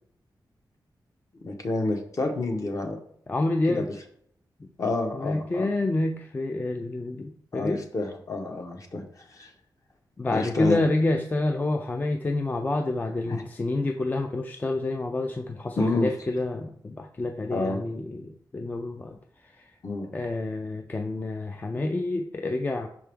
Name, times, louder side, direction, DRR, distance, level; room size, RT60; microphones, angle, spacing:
voice 1, 1.4-3.0 3.7-3.9 4.8-5.7 7.5-9.5 10.3-10.8 13.3-13.4 15.8-16.1 17.5-17.8 19.8-20.1, left 2 dB, 45° left, 4 dB, 0.9 m, -29 dB
voice 2, 3.3-3.9 4.6-4.7 5.1-7.8 10.2-19.1 19.6-19.7 20.1-22.9, left 2 dB, 20° left, 4 dB, 0.3 m, -28 dB
5.9 x 4.5 x 3.5 m, 0.66 s
wide cardioid pair, 165°, 8 cm